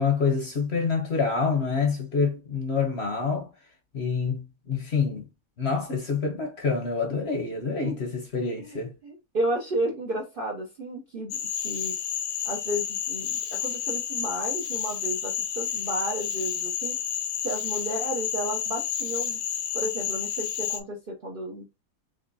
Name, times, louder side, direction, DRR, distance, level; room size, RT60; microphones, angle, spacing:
voice 1, 0.0-3.5 3.9-5.2 5.6-8.9, left 5 dB, 50° left, 0.9 m, -27 dB
voice 2, 8.6-11.4 11.6-11.9 12.4-17.0 17.4-19.4 19.7-21.6, right 1 dB, 50° right, 0.7 m, -32 dB
Cricket / Frog, 11.3-20.8, left 9 dB, 75° left, 1.1 m, -30 dB
3.8 x 3.2 x 2.6 m
omnidirectional pair, 1.7 m